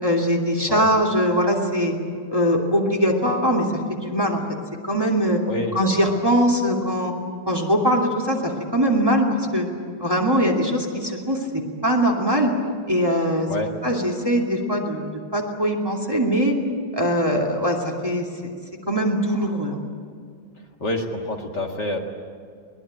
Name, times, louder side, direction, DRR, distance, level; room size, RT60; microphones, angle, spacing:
voice 1, 0.0-1.9 2.3-4.4 4.8-5.4 5.7-7.1 7.5-9.7 10.0-12.5 12.9-13.5 13.8-16.6 16.9-18.5 18.9-19.8, equal, 10° right, 0 dB, 2.5 m, -21 dB
voice 2, 5.4-5.8 13.5-13.7 20.8-22.0, left 1 dB, 55° left, 2 dB, 2.5 m, -27 dB
23.0 x 20.5 x 9.0 m, 2.1 s
omnidirectional pair, 2.3 m